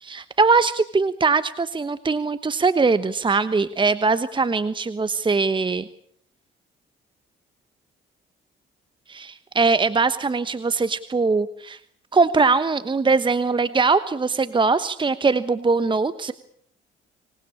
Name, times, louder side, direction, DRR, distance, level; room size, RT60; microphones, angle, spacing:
voice 1, 0.0-5.9 9.1-11.8 12.1-16.3, right 4 dB, 25° right, 13 dB, 1.1 m, -21 dB
25.5 x 19.5 x 8.7 m, 0.64 s
cardioid pair, 90°, 20 cm